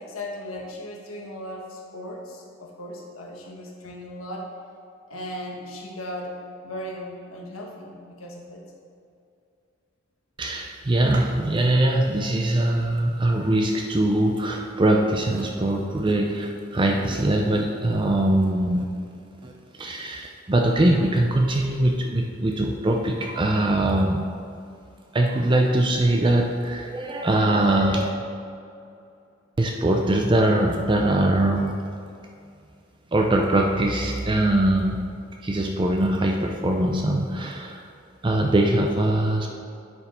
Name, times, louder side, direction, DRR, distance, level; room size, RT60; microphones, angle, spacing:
voice 1, 0.0-4.5 5.1-8.6 27.2-27.3, left 1 dB, 90° left, -1 dB, 1.3 m, -37 dB
voice 2, 10.4-18.9 19.4-19.5 19.8-24.2 25.1-28.1 29.6-31.8 33.1-35.0 35.4-37.8 38.2-39.5, right 1 dB, 25° right, 1 dB, 0.4 m, -22 dB
9.9 x 4.9 x 4.3 m, 2.5 s
head